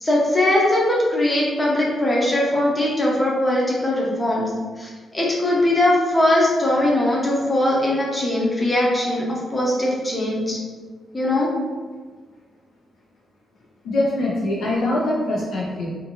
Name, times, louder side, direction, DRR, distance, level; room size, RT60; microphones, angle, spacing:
voice 1, 0.0-4.5 4.8-10.6 11.1-11.5, left 1 dB, 15° left, -4 dB, 0.6 m, -20 dB
voice 2, 13.8-15.9, left 1 dB, 80° left, -6 dB, 0.6 m, -23 dB
2.5 x 2.4 x 2.8 m, 1.4 s
wide cardioid pair, 155°, 0 cm